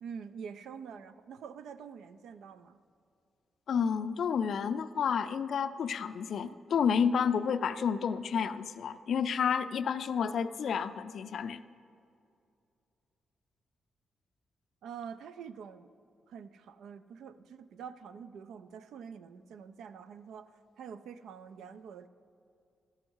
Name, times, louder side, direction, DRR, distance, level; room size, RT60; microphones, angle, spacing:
voice 1, 0.0-2.8 6.7-6.8 14.8-15.9 16.3-22.1, right 7 dB, 85° right, 13 dB, 0.3 m, -46 dB
voice 2, 3.7-11.6, left 7 dB, 70° left, 12 dB, 0.3 m, -30 dB
13.0 x 6.4 x 4.6 m, 2.5 s
cardioid pair, 90°, 0 cm